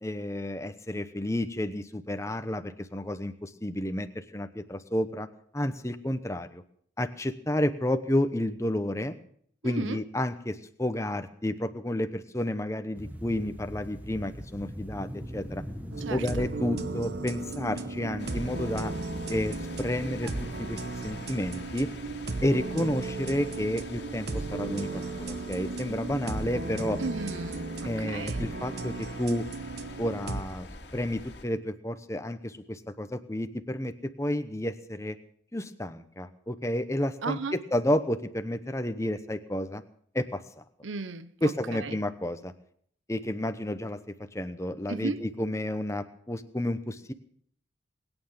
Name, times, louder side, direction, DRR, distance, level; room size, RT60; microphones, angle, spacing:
voice 1, 0.0-5.3 5.5-6.6 7.0-9.1 9.6-15.6 16.1-18.9 19.3-21.9 22.4-27.0 27.8-29.5 30.0-30.7 30.9-35.2 35.5-39.8 40.1-40.4 41.4-42.5 43.1-47.1, left 1 dB, 15° left, 0.9 m, -31 dB
voice 2, 9.6-10.0 16.0-16.5 27.0-28.5 37.2-37.6 40.8-42.0 44.9-45.2, right 3 dB, 80° right, 0.8 m, -35 dB
sound 1, 12.9-21.9, equal, 10° right, 1.3 m, -43 dB
sound 2, 15.9-30.4, right 3 dB, 55° right, 1.0 m, -35 dB
sound 3, 18.2-31.4, left 2 dB, 55° left, 2.0 m, -45 dB
21.0 x 9.2 x 7.4 m
head